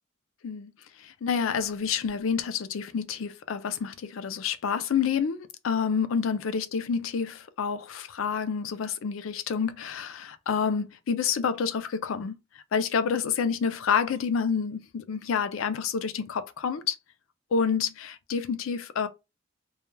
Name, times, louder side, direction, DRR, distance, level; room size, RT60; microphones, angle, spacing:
voice 1, 1.0-12.4 12.7-17.0 17.5-19.1, left 6 dB, 90° left, 0.4 m, -28 dB
2.3 x 2.2 x 3.1 m
head